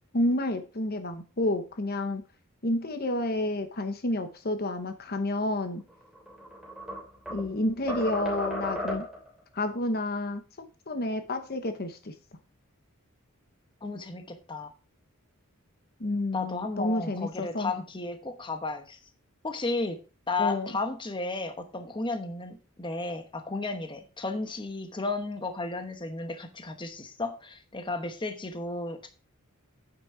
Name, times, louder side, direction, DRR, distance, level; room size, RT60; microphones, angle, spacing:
voice 1, 0.1-2.2 2.6-5.8 7.3-9.0 9.5-12.1 16.0-17.7 20.4-20.7, left 1 dB, 45° left, 8 dB, 1.0 m, -30 dB
sound 1, 6.1-7.5 7.9-9.3, equal, ahead, 3.3 m, -34 dB
voice 2, 13.8-14.7 16.3-19.0 19.4-20.0 20.3-29.1, left 3 dB, 20° left, 6 dB, 1.0 m, -33 dB
9.2 x 6.0 x 4.8 m, 0.34 s
head